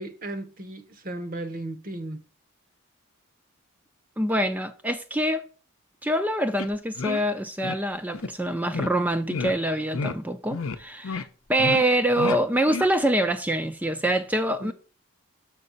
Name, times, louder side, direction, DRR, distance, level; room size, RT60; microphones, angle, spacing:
voice 1, 0.0-2.2 14.6-14.7, right 1 dB, 40° right, 0.9 m, -35 dB
voice 2, 4.2-5.4 6.0-14.7, right 1 dB, 5° right, 0.4 m, -25 dB
sound 1, 6.6-6.7 7.0-7.2 7.6-7.8 8.1-8.3 8.7-8.9 9.3-9.5 9.9-10.2 10.5-10.8 11.0-11.2 11.6-11.8 12.2-12.4 12.7-12.9, left 4 dB, 75° left, 0.6 m, -30 dB
6.6 x 5.3 x 3.9 m
head